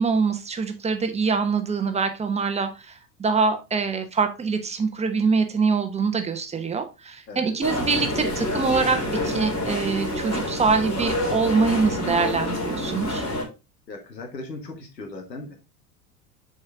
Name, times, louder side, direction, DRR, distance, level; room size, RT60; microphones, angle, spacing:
voice 1, 0.0-2.9 3.2-13.3, right 4 dB, 15° right, 7 dB, 1.0 m, -24 dB
voice 2, 7.3-7.6 13.9-15.5, left 2 dB, 80° left, 3 dB, 1.7 m, -37 dB
sound 1, 7.6-13.4, left 1 dB, 30° left, 3.1 m, -27 dB
6.5 x 4.6 x 3.4 m, 0.27 s
figure-of-eight pair, 85°, 49 cm